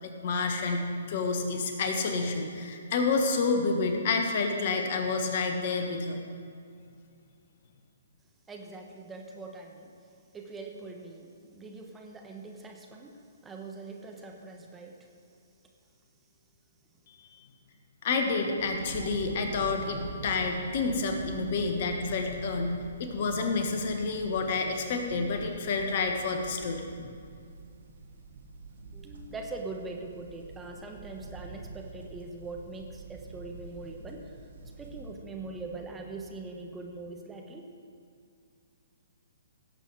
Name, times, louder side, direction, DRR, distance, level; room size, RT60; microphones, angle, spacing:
voice 1, 0.0-6.2 18.0-26.8, left 4 dB, 50° left, 4 dB, 1.5 m, -29 dB
voice 2, 8.5-9.9 10.3-15.1 18.4-18.6 19.0-19.1 28.9-37.6, right 3 dB, 10° right, 1 dB, 1.1 m, -42 dB
sound 1, 18.6-35.1, right 3 dB, 60° right, 1.6 m, -45 dB
17.0 x 7.9 x 4.8 m, 2.3 s
figure-of-eight pair, 125°, 0 cm